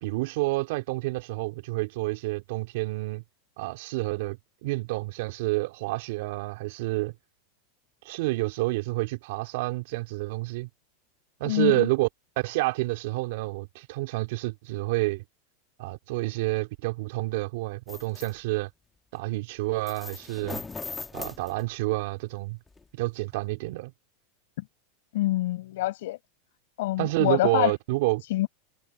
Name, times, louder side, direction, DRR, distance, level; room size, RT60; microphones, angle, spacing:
voice 1, 0.0-3.2 3.6-7.1 8.0-10.7 11.4-12.1 12.4-15.2 15.8-18.7 19.1-20.6 21.1-22.6 22.9-23.9 27.0-28.2, right 21 dB, 65° right, 3.1 m, -29 dB
voice 2, 11.4-11.9 24.6-24.7 25.1-26.2 26.8-27.7 28.3-28.5, left 17 dB, 70° left, 4.9 m, -26 dB
sound 1, 17.9-18.3 19.9-22.0 22.7-22.8 23.3-23.4, left 3 dB, 15° left, 1.5 m, -39 dB
supercardioid pair, 120°, 0 cm